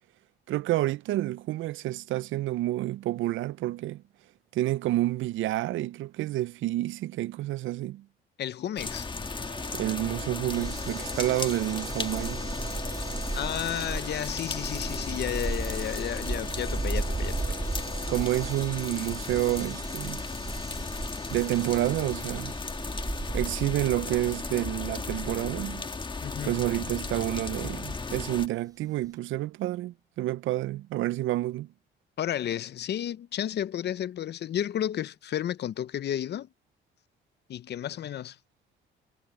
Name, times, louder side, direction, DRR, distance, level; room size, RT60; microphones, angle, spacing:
voice 1, 0.5-4.0 4.5-8.1 9.7-12.4 18.1-20.3 21.3-22.5 23.3-25.9 26.4-31.7, right 15 dB, 80° right, 0.5 m, -29 dB
voice 2, 8.4-9.1 13.3-17.6 26.2-26.6 32.2-36.5 37.5-38.4, left 10 dB, 60° left, 0.7 m, -32 dB
sound 1, 8.8-28.5, left 4 dB, 25° left, 1.4 m, -35 dB
Guitar, 9.2-18.7, right 5 dB, 35° right, 1.5 m, -46 dB
sound 2, 10.5-25.7 27.3-27.4 27.7-27.8, right 2 dB, 20° right, 3.4 m, -36 dB
cardioid pair, 90°, 20 cm